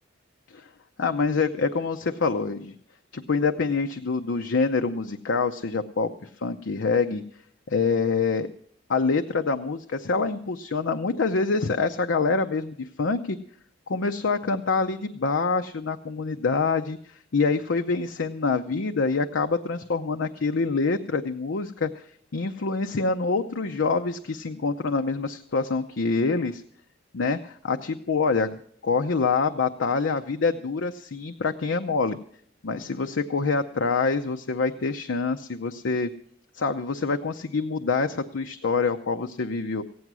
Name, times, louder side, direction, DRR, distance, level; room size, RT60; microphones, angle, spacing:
voice 1, 1.0-2.7 3.1-7.2 7.7-8.5 8.9-13.4 13.9-17.0 17.3-22.0 22.3-26.6 27.1-28.6 28.8-32.2 32.6-36.1 36.5-39.8, left 4 dB, 90° left, 6 dB, 0.6 m, -26 dB
15.5 x 9.5 x 6.1 m, 0.63 s
head